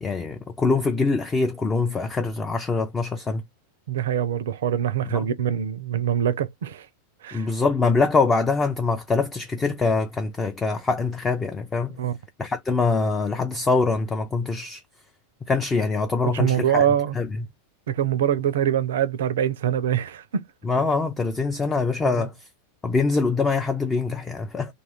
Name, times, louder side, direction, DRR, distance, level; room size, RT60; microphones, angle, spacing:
voice 1, 0.0-3.4 5.1-5.3 7.3-12.0 12.4-14.8 15.5-16.9 17.1-17.3 20.6-22.3 22.8-24.7, left 4 dB, 15° left, 0.4 m, -24 dB
voice 2, 3.9-6.9 7.2-7.5 12.0-12.2 16.3-17.2 17.9-20.2 22.0-22.3, right 10 dB, 60° right, 0.4 m, -24 dB
2.5 x 2.4 x 3.3 m
figure-of-eight pair, 90°, 0 cm